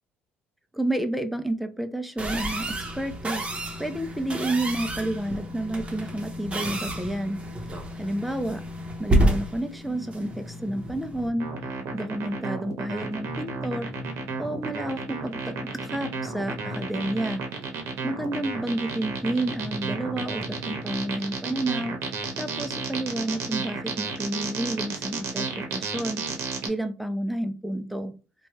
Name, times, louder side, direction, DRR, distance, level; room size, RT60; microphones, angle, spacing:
voice 1, 0.7-3.4 3.8-7.4 8.0-8.6 9.0-11.5 11.9-13.9 14.4-17.4 18.0-22.0 22.4-26.2 26.6-28.1, right 1 dB, ahead, 8 dB, 0.4 m, -30 dB
sound 1, 2.2-11.3, right 1 dB, 25° right, 0.8 m, -30 dB
sound 2, 9.8-23.9, left 1 dB, 55° left, 1.0 m, -42 dB
sound 3, 11.4-26.7, right 5 dB, 70° right, 0.8 m, -32 dB
3.1 x 2.2 x 2.9 m, 0.33 s
supercardioid pair, 90°, 5 cm